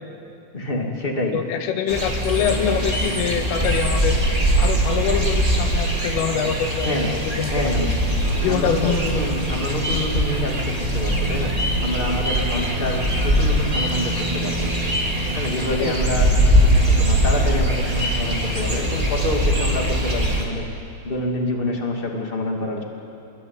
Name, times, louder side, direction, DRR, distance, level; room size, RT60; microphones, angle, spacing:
voice 1, 0.5-1.3 6.8-7.1 7.5-7.9 8.4-11.5 11.8-13.0 13.2-14.7 15.3-16.3 16.8-20.6 21.0-22.8, left 1 dB, 30° left, 0 dB, 0.9 m, -27 dB
voice 2, 1.3-4.2 4.6-7.7 8.4-9.2 15.8-16.0, left 7 dB, 80° left, 5 dB, 4.4 m, -24 dB
sound 1, 1.9-20.4, right 1 dB, 15° right, 1.2 m, -21 dB
28.0 x 22.5 x 8.9 m, 2.6 s
omnidirectional pair, 5.8 m